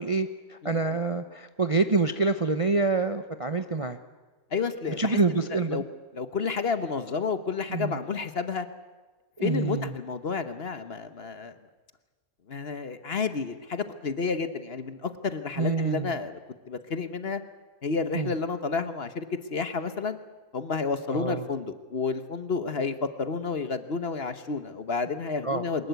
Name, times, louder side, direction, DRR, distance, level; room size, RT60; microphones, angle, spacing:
voice 1, 0.0-4.0 5.0-5.8 7.7-8.0 9.4-9.9 15.6-16.1 18.2-18.3 21.1-21.4 25.4-25.6, right 3 dB, 30° right, 9 dB, 0.7 m, -26 dB
voice 2, 4.5-5.8 6.1-8.7 9.4-11.6 12.5-16.4 16.7-17.4 17.8-20.2 20.5-25.9, left 4 dB, 45° left, 11 dB, 1.2 m, -31 dB
23.0 x 21.0 x 8.2 m, 1.3 s
omnidirectional pair, 1.6 m